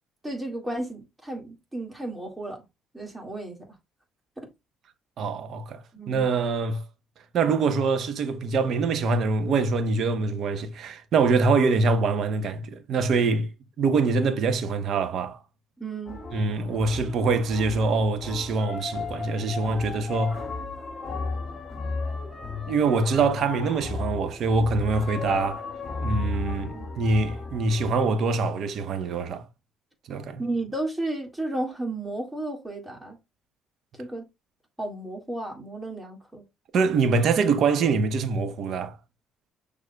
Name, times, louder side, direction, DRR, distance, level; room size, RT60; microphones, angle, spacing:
voice 1, 0.2-2.6 2.9-3.6 4.4-4.5 5.9-6.2 15.8-16.2 26.7-26.9 30.4-33.2 34.0-34.2 34.8-36.4, right 2 dB, 15° right, 2.0 m, -33 dB
voice 2, 5.2-5.8 6.1-6.8 7.3-13.5 13.8-15.4 16.3-20.4 22.7-25.6 26.0-29.5 30.1-30.4 36.7-39.0, right 4 dB, 60° right, 0.8 m, -24 dB
sound 1, 16.1-27.9, left 4 dB, 40° left, 2.0 m, -34 dB
6.3 x 3.5 x 2.3 m
supercardioid pair, 70°, 0 cm